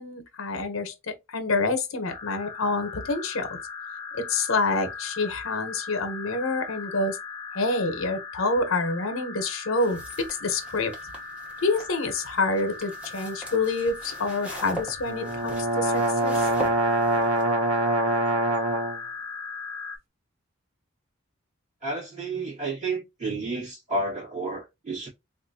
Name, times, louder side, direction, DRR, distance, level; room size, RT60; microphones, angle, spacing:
voice 1, 0.0-3.6 4.1-7.2 7.5-10.9 11.6-16.3, left 3 dB, 80° left, 0.7 m, -27 dB
sound 1, 2.1-20.0, left 4 dB, 20° left, 0.7 m, -39 dB
sound 2, 9.8-17.4, right 1 dB, 5° right, 0.8 m, -41 dB
sound 3, 15.1-19.0, right 2 dB, 80° right, 0.7 m, -24 dB
voice 2, 21.8-25.1, right 2 dB, 35° right, 2.0 m, -31 dB
3.5 x 2.5 x 2.7 m
head